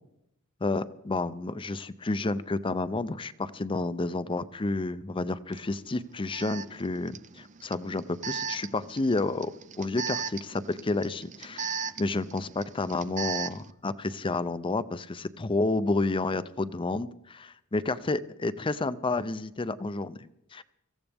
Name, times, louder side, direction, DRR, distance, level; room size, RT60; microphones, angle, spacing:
voice 1, 0.6-9.5 9.8-20.6, left 2 dB, 25° left, 14 dB, 0.5 m, -30 dB
Alarm, 5.5-5.6 6.3-13.7, right 6 dB, 35° right, 0.5 m, -37 dB
24.5 x 15.0 x 3.5 m, 0.83 s
head